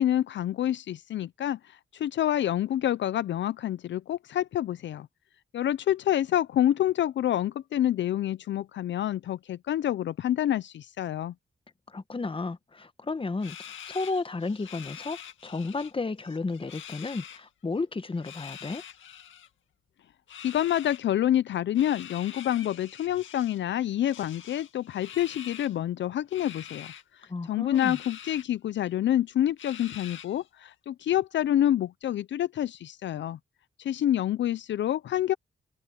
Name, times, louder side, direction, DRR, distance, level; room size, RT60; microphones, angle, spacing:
voice 1, 0.0-5.1 5.5-11.3 20.4-33.4 33.8-35.3, left 11 dB, 70° left, 0.5 m, -27 dB
voice 2, 11.9-15.2 15.4-18.8 27.3-28.0, left 3 dB, 25° left, 1.3 m, -33 dB
sound 1, 13.4-15.9 16.2-17.4 18.1-19.5 20.3-21.0 21.8-23.6 24.1-25.8 26.3-27.0 27.7-28.5 28.9-29.0 29.6-30.5, left 9 dB, 85° left, 2.1 m, -45 dB
cardioid pair, 80°, 19 cm